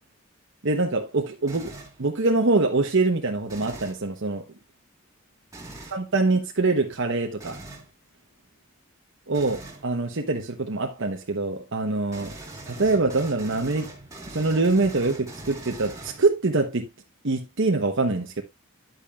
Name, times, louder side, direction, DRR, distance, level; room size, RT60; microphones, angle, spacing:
voice 1, 0.6-4.4 5.9-7.6 9.3-12.3 12.7-13.9 14.3-16.9 17.2-18.4, right 3 dB, 60° right, 1.0 m, -24 dB
sound 1, 1.5-2.0 3.5-4.0 5.5-6.0 7.4-7.9 9.3-9.8 12.1-16.5, right 2 dB, 15° right, 2.5 m, -41 dB
10.5 x 8.5 x 2.4 m
head